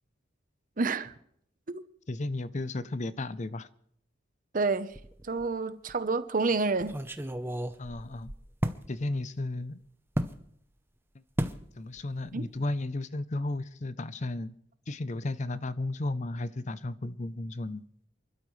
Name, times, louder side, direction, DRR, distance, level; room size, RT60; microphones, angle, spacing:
voice 1, 0.8-1.1 1.7-1.8 4.5-4.9 5.2-7.0 12.3-12.4, right 3 dB, 45° right, 0.8 m, -29 dB
voice 2, 2.1-3.7 7.8-8.3 8.9-9.8 11.1-11.2 11.8-14.5 14.9-17.8, left 2 dB, 40° left, 0.6 m, -34 dB
sound 1, 4.9-5.5 5.9-6.0 6.8-8.8 10.1-10.4 11.4-11.6 12.0-12.3 12.6-12.7, equal, 10° right, 0.7 m, -33 dB
28.5 x 12.5 x 3.2 m
head